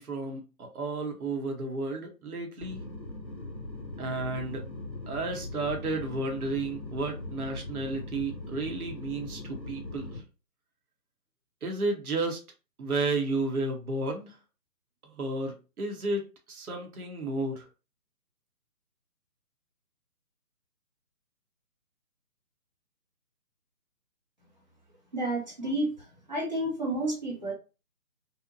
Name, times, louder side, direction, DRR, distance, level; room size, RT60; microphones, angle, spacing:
voice 1, 0.0-2.8 4.0-4.6 5.1-10.2 11.6-12.4 12.8-14.4 15.2-17.7, right 2 dB, 65° right, 3 dB, 0.8 m, -32 dB
sound 1, 2.6-10.2, left 2 dB, 25° left, 0.6 m, -40 dB
voice 2, 25.1-25.9 26.3-27.5, right 1 dB, 30° right, -3 dB, 0.6 m, -30 dB
2.7 x 2.1 x 2.5 m, 0.31 s
figure-of-eight pair, 150°, 48 cm